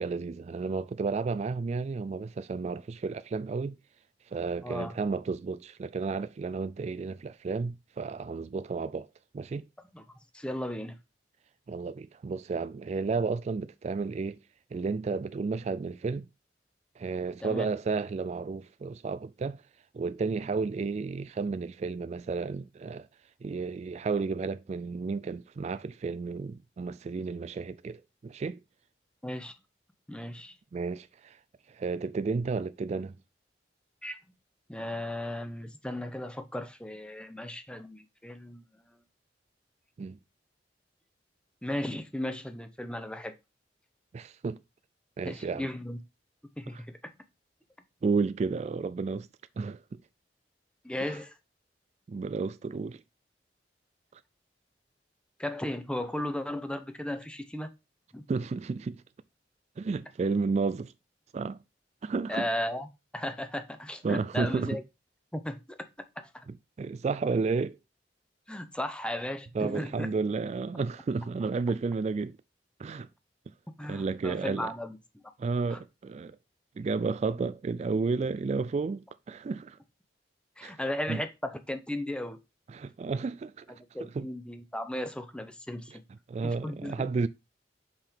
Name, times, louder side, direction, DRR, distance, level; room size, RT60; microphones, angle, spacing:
voice 1, 0.0-3.8 4.3-9.1 9.3-9.7 11.7-14.4 14.7-16.3 17.0-19.6 19.9-23.1 23.4-28.6 30.7-31.4 31.7-33.2 40.0-40.2 44.1-44.6 45.2-45.7 46.7-46.8 48.0-49.3 49.6-49.8 52.1-53.0 58.3-59.0 59.8-60.9 61.3-61.6 62.0-62.4 64.0-64.8 66.5-67.8 69.5-72.4 72.8-73.1 73.9-74.7 75.4-76.4 76.8-79.8 80.6-80.7 81.1-81.2 82.7-83.7 84.0-84.3 86.3-87.3, right 4 dB, 40° right, 0.3 m, -32 dB
voice 2, 4.6-4.9 9.9-10.0 10.3-11.0 17.4-17.7 29.2-29.5 30.1-30.5 34.0-34.2 34.7-38.6 41.6-43.3 45.2-46.0 46.6-47.1 50.8-51.3 55.4-57.7 58.1-58.2 62.3-62.9 63.1-64.8 65.3-65.8 66.2-66.5 68.5-70.1 73.8-75.0 75.7-75.8 80.6-82.4 83.9-86.0 86.4-87.1, left 1 dB, 5° left, 0.7 m, -35 dB
5.7 x 5.2 x 4.5 m
head